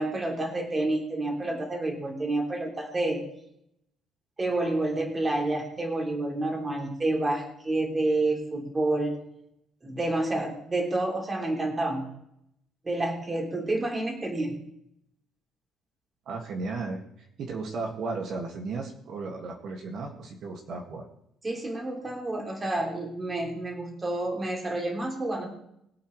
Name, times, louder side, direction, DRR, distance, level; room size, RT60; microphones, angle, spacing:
voice 1, 0.0-3.2 4.4-9.2 9.8-12.1 12.8-14.6 21.4-25.5, right 2 dB, 20° right, 1 dB, 3.0 m, -29 dB
voice 2, 16.3-17.0 17.4-21.1, right 3 dB, 55° right, 1 dB, 2.0 m, -34 dB
22.5 x 8.5 x 3.2 m, 0.75 s
cardioid pair, 155°, 0 cm